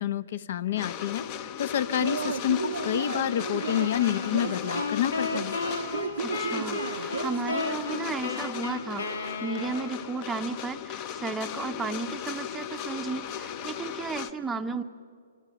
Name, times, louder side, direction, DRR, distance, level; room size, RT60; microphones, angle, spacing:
voice 1, 0.0-5.6, left 11 dB, 55° left, 15 dB, 1.0 m, -28 dB
sound 1, 0.8-14.3, left 9 dB, 30° left, 0.9 m, -37 dB
Yell / Cheering, 2.0-8.1, right 6 dB, 85° right, 0.7 m, -35 dB
sound 2, 3.6-10.2, left 3 dB, 90° left, 3.0 m, -34 dB
voice 2, 6.2-14.8, right 4 dB, 10° right, 5 dB, 0.8 m, -34 dB
27.0 x 25.5 x 7.1 m, 2.2 s
hypercardioid pair, 150°, 0 cm